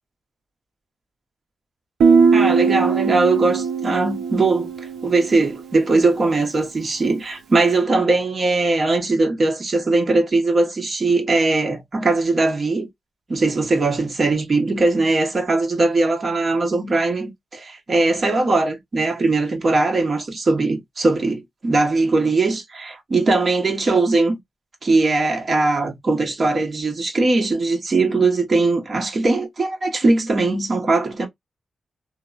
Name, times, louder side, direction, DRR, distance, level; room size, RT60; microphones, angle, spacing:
Guitar, 2.0-5.6, right 5 dB, 90° right, 0.4 m, -19 dB
voice 1, 2.3-12.9 13.3-24.4 24.8-31.3, right 3 dB, 45° right, 1.0 m, -20 dB
2.9 x 2.0 x 2.3 m
cardioid pair, 95°, 0 cm